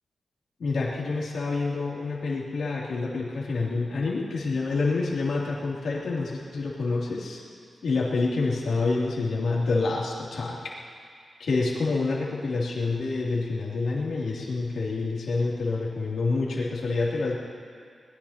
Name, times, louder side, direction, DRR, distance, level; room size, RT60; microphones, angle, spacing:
voice 1, 0.6-7.4 7.8-10.6 11.4-17.4, left 3 dB, 80° left, -5 dB, 3.0 m, -27 dB
22.5 x 20.0 x 3.0 m, 2.2 s
wide cardioid pair, 150°, 0 cm